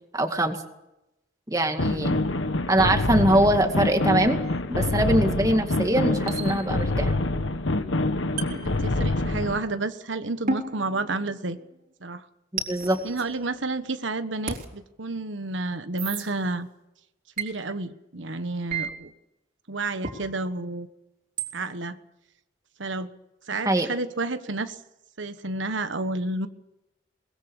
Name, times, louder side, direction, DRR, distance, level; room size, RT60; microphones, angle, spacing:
voice 1, 0.1-0.6 1.5-2.2 2.7-4.4 4.7-7.1 12.5-13.0 23.7-23.9, right 1 dB, 20° right, 5 dB, 2.1 m, -22 dB
sound 1, 1.8-9.6, left 2 dB, 90° left, 1.3 m, -26 dB
sound 2, 4.4-4.6 6.3-7.0 8.4-9.4 10.5-11.8 12.6-13.9 14.5-14.7 16.0-16.2 17.4-17.5 18.7-18.9 20.0-20.2 21.4-21.5, right 4 dB, 45° right, 3.7 m, -34 dB
voice 2, 8.5-11.6 12.0-12.3 13.0-16.7 17.4-19.1 19.7-20.9 21.5-22.0 22.8-23.1 23.5-24.8 25.2-26.5, right 2 dB, 80° right, 10 dB, 1.3 m, -30 dB
22.5 x 21.0 x 7.2 m, 0.91 s
head